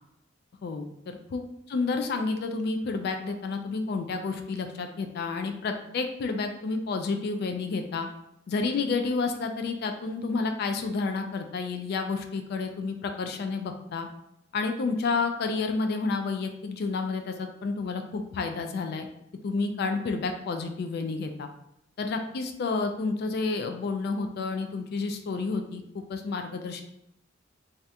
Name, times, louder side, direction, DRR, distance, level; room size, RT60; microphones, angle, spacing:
voice 1, 0.6-1.4 1.7-8.1 8.5-14.1 14.5-19.1 19.4-21.5 22.0-26.8, left 4 dB, 55° left, 5 dB, 0.3 m, -30 dB
2.7 x 2.4 x 3.3 m, 0.82 s
head